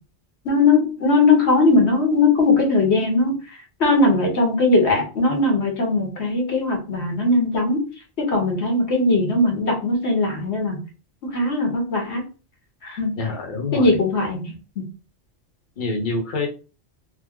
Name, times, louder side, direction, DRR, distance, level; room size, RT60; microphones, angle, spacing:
voice 1, 0.4-3.3 3.8-7.8 8.2-10.8 11.2-12.2 12.8-13.1 13.7-14.8, left 2 dB, 65° left, 0 dB, 1.3 m, -19 dB
voice 2, 13.2-14.0 15.8-16.5, left 3 dB, 45° left, 0 dB, 0.9 m, -26 dB
3.1 x 2.0 x 3.5 m, 0.35 s
omnidirectional pair, 1.2 m